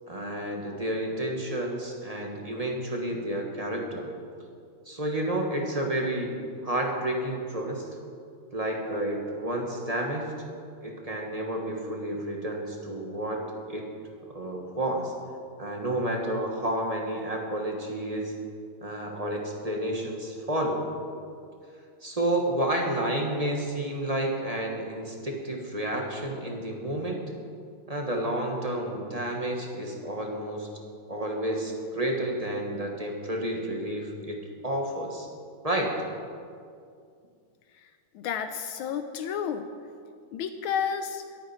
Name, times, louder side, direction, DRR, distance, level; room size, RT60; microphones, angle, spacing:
voice 1, 0.1-4.1 4.8-6.4 6.6-7.9 8.5-10.3 10.8-13.4 13.7-13.9 14.3-15.1 15.6-18.3 18.8-20.8 22.0-27.2 27.9-30.7 31.1-34.4 34.6-35.3 35.6-35.9, right 1 dB, 20° right, 0 dB, 1.2 m, -30 dB
voice 2, 37.7-39.7 40.3-41.2, left 7 dB, 80° left, 8 dB, 1.4 m, -31 dB
22.0 x 8.7 x 4.3 m, 2.3 s
omnidirectional pair, 2.3 m